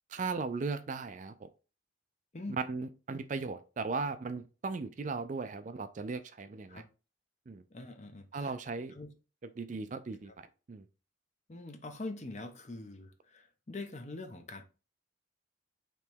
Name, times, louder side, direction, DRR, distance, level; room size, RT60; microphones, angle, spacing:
voice 1, 0.1-1.5 2.6-6.8 7.5-7.6 8.3-8.9 9.6-10.3 10.7-10.8, right 4 dB, 40° right, 0.4 m, -37 dB
voice 2, 7.7-8.5 8.9-9.1 10.3-10.4 11.5-14.6, left 2 dB, 35° left, 0.7 m, -44 dB
3.4 x 3.0 x 4.5 m
head